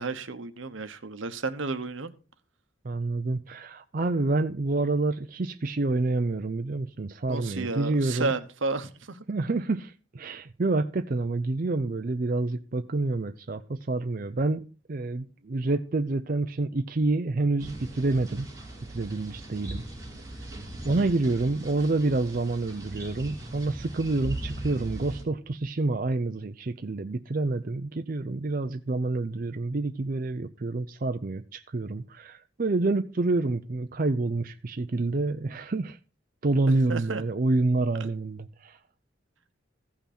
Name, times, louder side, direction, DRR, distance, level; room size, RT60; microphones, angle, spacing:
voice 1, 0.0-2.1 7.2-9.2 21.0-21.1 36.9-37.2 38.0-38.1, right 3 dB, 80° right, 1.0 m, -32 dB
voice 2, 2.8-8.3 9.3-14.6 14.9-18.5 18.9-19.8 20.8-36.0 36.4-38.8, right 2 dB, 45° right, 0.5 m, -28 dB
sound 1, 17.6-25.2, right 1 dB, 15° right, 3.3 m, -39 dB
15.0 x 5.8 x 4.2 m
head